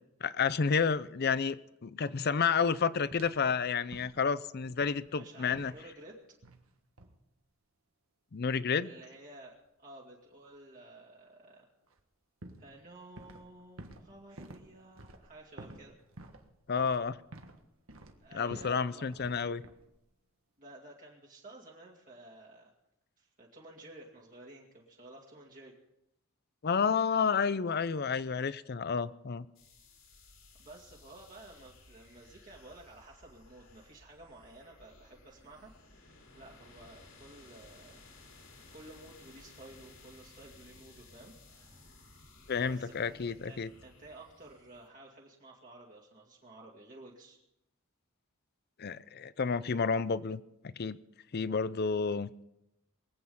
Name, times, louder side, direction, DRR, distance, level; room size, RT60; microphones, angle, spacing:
voice 1, 0.2-5.7 8.3-8.9 16.7-17.2 18.3-19.6 26.6-29.5 42.5-43.7 48.8-51.0 51.3-52.3, left 5 dB, 50° left, 17 dB, 0.5 m, -30 dB
sound 1, 3.1-3.5 3.9-4.3 4.6-5.1 5.5-5.8 6.4-6.7 7.0-7.2 11.9-12.0 12.4-13.5 13.8-17.6 17.9-18.8 19.1-19.4 19.6-20.0, right 1 dB, 70° right, 1.5 m, -51 dB
voice 2, 5.1-6.2 8.8-11.7 12.6-16.0 18.2-19.1 20.6-22.7 23.2-25.7 30.6-38.0 38.7-41.9 42.7-47.4, right 2 dB, 40° right, -3 dB, 2.2 m, -53 dB
sound 2, 29.5-44.9, left 3 dB, 65° left, 3.5 m, -57 dB
23.0 x 8.7 x 5.5 m, 0.85 s
head